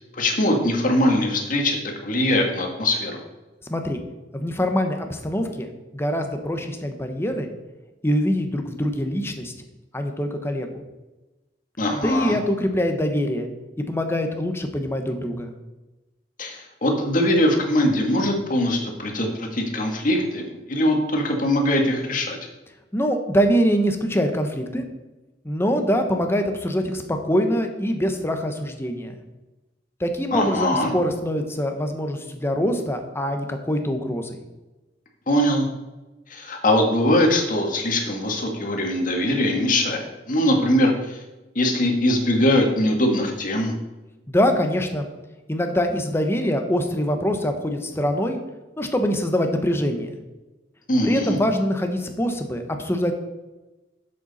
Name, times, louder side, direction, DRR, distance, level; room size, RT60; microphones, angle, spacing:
voice 1, 0.1-3.2 11.8-12.4 16.4-22.4 30.3-30.9 35.3-35.7 36.3-41.2 41.6-43.7 50.9-51.4, left 1 dB, 50° left, 2 dB, 1.8 m, -21 dB
voice 2, 4.3-5.7 5.9-7.5 8.0-9.5 9.9-10.8 11.9-13.5 13.9-15.5 22.9-24.8 25.4-29.2 30.0-34.3 44.3-45.1 45.5-48.4 48.8-50.1 51.0-53.1, equal, 15° left, 5 dB, 1.1 m, -24 dB
10.5 x 7.7 x 4.2 m, 1.1 s
head